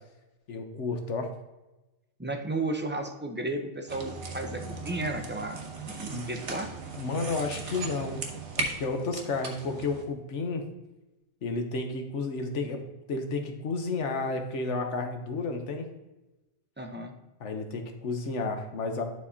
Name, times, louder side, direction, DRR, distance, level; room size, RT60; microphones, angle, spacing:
voice 1, 0.5-1.3 6.1-6.3 7.0-8.2 8.6-10.6 11.4-12.8 13.1-15.9 17.4-19.0, left 3 dB, 75° left, 5 dB, 1.3 m, -31 dB
voice 2, 2.2-5.6 6.0-6.7 16.8-17.1, right 2 dB, 10° right, 3 dB, 0.6 m, -33 dB
sound 1, 3.9-10.0, right 4 dB, 75° right, 1.3 m, -37 dB
11.0 x 4.7 x 2.8 m, 1.0 s
omnidirectional pair, 1.2 m